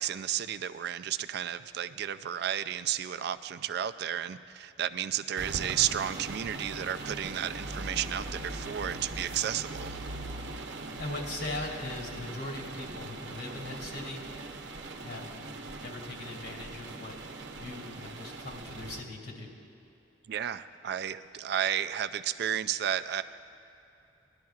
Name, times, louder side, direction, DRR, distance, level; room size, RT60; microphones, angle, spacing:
voice 1, 0.0-10.0 20.3-23.2, right 10 dB, 60° right, 12 dB, 0.3 m, -32 dB
sound 1, 5.4-19.0, right 2 dB, 80° right, 0.8 m, -40 dB
voice 2, 10.5-14.2 15.0-17.2 17.5-19.5, left 2 dB, 80° left, -1 dB, 2.6 m, -40 dB
18.0 x 11.5 x 2.4 m, 2.8 s
head